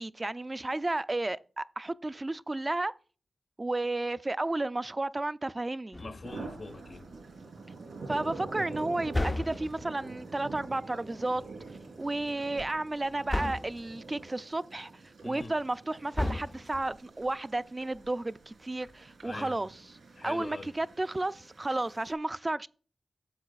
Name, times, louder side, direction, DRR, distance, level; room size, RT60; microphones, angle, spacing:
voice 1, 0.0-2.9 3.6-6.0 8.1-11.4 12.0-14.9 15.2-19.7 20.2-22.7, right 2 dB, 30° right, 0.4 m, -32 dB
sound 1, 5.9-6.6 9.1-10.0 13.3-13.9 16.1-17.0, left 2 dB, 30° left, 0.4 m, -33 dB
voice 2, 6.0-7.1 15.2-15.6 19.2-19.6 20.1-20.7, left 3 dB, 75° left, 1.3 m, -43 dB
sound 2, 6.2-22.1, right 3 dB, 85° right, 3.7 m, -46 dB
12.5 x 7.5 x 2.4 m
cardioid pair, 50°, 0 cm